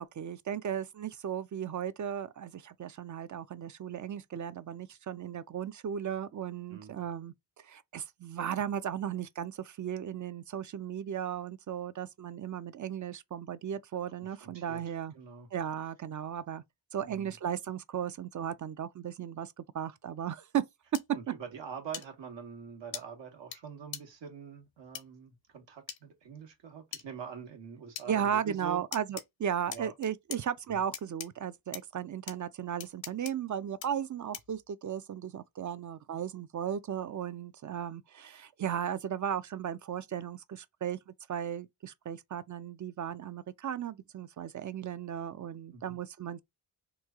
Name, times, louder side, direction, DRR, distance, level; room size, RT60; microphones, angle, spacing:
voice 1, 0.0-7.3 7.6-15.1 15.5-16.6 16.9-20.6 28.1-46.4, right 9 dB, 45° right, 0.5 m, -36 dB
voice 2, 6.7-7.0 14.2-15.5 17.0-17.4 21.1-28.8 29.7-29.9 30.7-30.8 45.7-46.0, right 6 dB, 80° right, 1.2 m, -45 dB
sound 1, 20.9-21.0 21.9-22.1 22.9-23.0 23.5-23.6 23.9-24.0 24.9-25.0 25.9-26.0 26.9-27.0 28.0-28.1 28.9-29.2 29.7-30.4 30.9-31.3 31.7-31.8 32.3-32.4 32.8-33.3 33.8-33.9 34.3-34.6, left 9 dB, 80° left, 0.8 m, -40 dB
3.1 x 2.3 x 3.5 m
cardioid pair, 55°, 44 cm